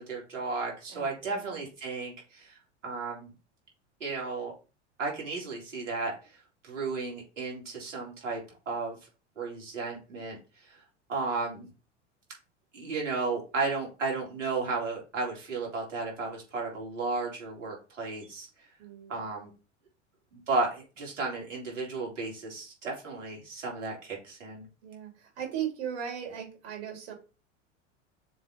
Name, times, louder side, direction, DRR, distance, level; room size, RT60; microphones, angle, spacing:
voice 1, 0.0-3.3 4.0-4.5 5.0-6.1 6.6-8.4 8.6-9.0 9.3-10.4 10.6-10.8 11.1-11.7 12.7-18.5 19.1-19.5 20.3-24.7, right 3 dB, 80° right, -2 dB, 3.4 m, -34 dB
voice 2, 0.9-1.6 18.8-19.2 24.8-27.1, right 9 dB, 60° right, 1 dB, 3.6 m, -38 dB
6.7 x 4.1 x 4.0 m, 0.33 s
figure-of-eight pair, 85°, 37 cm